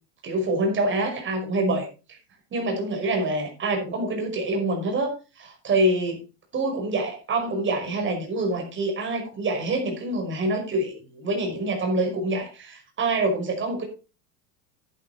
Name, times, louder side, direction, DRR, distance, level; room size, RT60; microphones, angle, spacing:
voice 1, 0.2-2.2 2.5-6.2 6.5-13.8, right 2 dB, 25° right, 3 dB, 5.5 m, -26 dB
11.0 x 11.0 x 4.1 m, 0.31 s
supercardioid pair, 145°, 46 cm